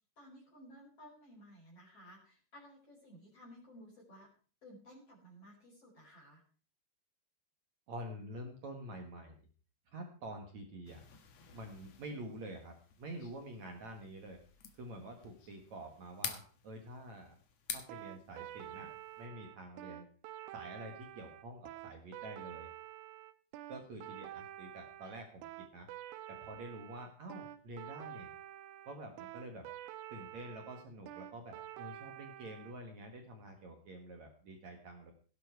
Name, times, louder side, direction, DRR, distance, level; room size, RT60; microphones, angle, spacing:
voice 1, 0.2-4.3 4.6-6.4, equal, 30° left, -3 dB, 5.4 m, -56 dB
voice 2, 7.9-9.4 9.9-11.0 11.5-14.4 14.8-17.3 17.7-18.9 19.2-20.1 20.5-22.7 23.7-25.9 26.3-28.3 28.9-29.7 30.1-35.1, right 1 dB, 55° right, 3 dB, 2.0 m, -48 dB
sound 1, 10.8-19.3, left 7 dB, 75° left, 1.5 m, -49 dB
sound 2, 17.9-32.7, right 13 dB, 85° right, 3.5 m, -48 dB
17.0 x 10.0 x 4.7 m, 0.39 s
omnidirectional pair, 5.6 m